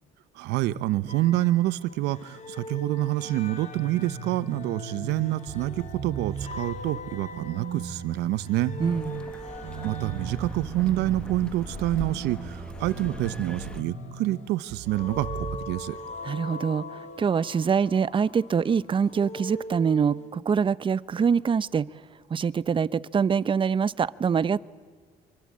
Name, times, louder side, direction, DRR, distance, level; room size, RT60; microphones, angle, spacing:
voice 1, 0.3-8.7 9.8-16.0, right 15 dB, 90° right, 16 dB, 0.9 m, -27 dB
sound 1, 1.1-20.3, left 2 dB, 45° left, 3.0 m, -42 dB
sound 2, 3.7-15.6, right 6 dB, 65° right, 3.2 m, -38 dB
sound 3, 8.8-13.8, equal, 5° left, 1.4 m, -41 dB
voice 2, 8.8-9.2 16.2-21.9 22.3-24.6, right 6 dB, 30° right, 18 dB, 0.7 m, -24 dB
25.5 x 23.5 x 8.6 m, 1.5 s
cardioid pair, 110°, 17 cm